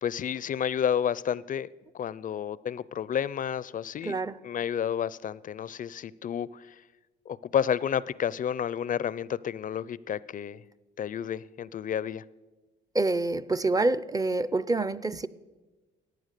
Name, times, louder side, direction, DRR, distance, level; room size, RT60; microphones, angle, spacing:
voice 1, 0.0-1.7 1.9-4.2 4.4-6.8 7.3-10.6 11.0-12.2, left 8 dB, 40° left, 20 dB, 0.4 m, -30 dB
voice 2, 4.0-4.4 12.9-15.3, right 2 dB, 20° right, 17 dB, 0.5 m, -27 dB
14.0 x 9.2 x 6.6 m, 1.2 s
cardioid pair, 90°, 20 cm